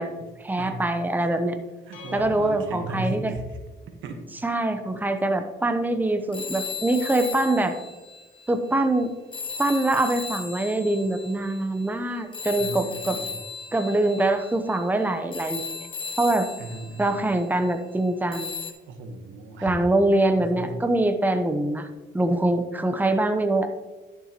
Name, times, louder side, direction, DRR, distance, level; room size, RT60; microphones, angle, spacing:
voice 1, 0.4-1.6 2.1-3.3 4.4-7.7 8.5-9.1 9.6-13.2 13.7-15.9 16.2-16.5 17.0-18.5 19.6-21.9 22.1-23.8, right 2 dB, 10° right, 7 dB, 0.8 m, -24 dB
sound 1, 1.9-3.9, left 1 dB, 85° left, 2.0 m, -43 dB
voice 2, 1.9-3.6 4.0-4.5 12.6-13.4 16.6-17.2 18.9-19.7 20.4-20.8, right 2 dB, 80° right, 6 dB, 1.2 m, -36 dB
sound 2, 6.3-8.8 9.3-17.8 18.3-18.7, left 5 dB, 25° left, 1.2 m, -36 dB
11.5 x 7.0 x 3.0 m, 1.3 s
cardioid pair, 90°, 20 cm